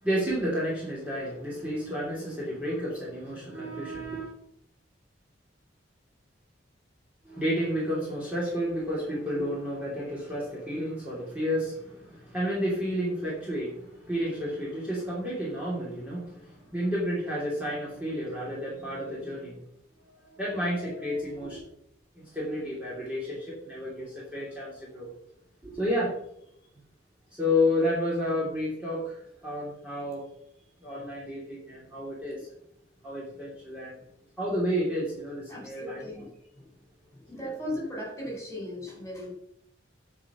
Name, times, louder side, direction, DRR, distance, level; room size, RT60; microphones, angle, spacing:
voice 1, 0.0-4.3 7.2-19.6 20.0-21.6 22.1-25.1 25.6-26.1 27.4-30.3 30.8-32.5 33.0-34.0 34.4-36.0, equal, 5° right, -7 dB, 3.0 m, -31 dB
voice 2, 35.5-36.7 37.1-39.3, left 1 dB, 15° left, -2 dB, 4.1 m, -38 dB
9.5 x 4.9 x 6.9 m, 0.74 s
head